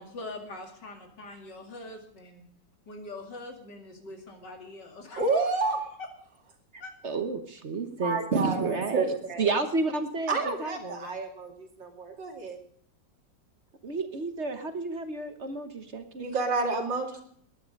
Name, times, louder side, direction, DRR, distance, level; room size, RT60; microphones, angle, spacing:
voice 1, 0.0-2.4 2.9-5.4 6.8-6.9, left 2 dB, 70° left, 4 dB, 3.0 m, -43 dB
voice 2, 5.2-5.8 7.8-9.5 10.3-12.6 16.2-17.2, right 3 dB, 85° right, 3 dB, 3.1 m, -30 dB
voice 3, 7.0-9.1 9.4-11.1 13.8-16.3, right 3 dB, 45° right, 8 dB, 1.2 m, -31 dB
19.5 x 11.0 x 5.3 m, 0.63 s
omnidirectional pair, 2.0 m